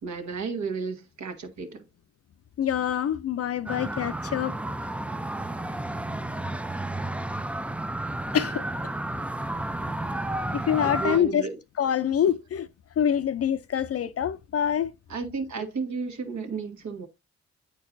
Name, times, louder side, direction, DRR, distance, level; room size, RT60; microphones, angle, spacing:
voice 1, 0.0-1.8 10.8-11.6 15.1-17.1, right 5 dB, 65° right, 1.4 m, -33 dB
voice 2, 2.6-4.5 8.3-8.6 10.5-11.5 11.8-12.7 13.0-14.9, left 9 dB, 50° left, 0.5 m, -25 dB
sound 1, 3.7-11.2, right 1 dB, 5° right, 0.3 m, -32 dB
8.5 x 4.5 x 2.5 m
supercardioid pair, 50°, 31 cm